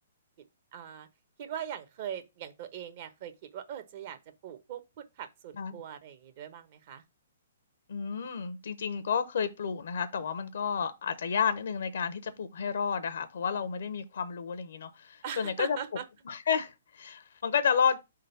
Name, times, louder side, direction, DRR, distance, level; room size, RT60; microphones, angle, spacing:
voice 1, 0.7-1.1 1.4-7.0 15.2-16.0, right 9 dB, 45° right, 1.1 m, -41 dB
voice 2, 7.9-15.8 16.3-18.0, left 6 dB, 70° left, 0.7 m, -31 dB
5.2 x 3.8 x 5.7 m
hypercardioid pair, 130°, 0 cm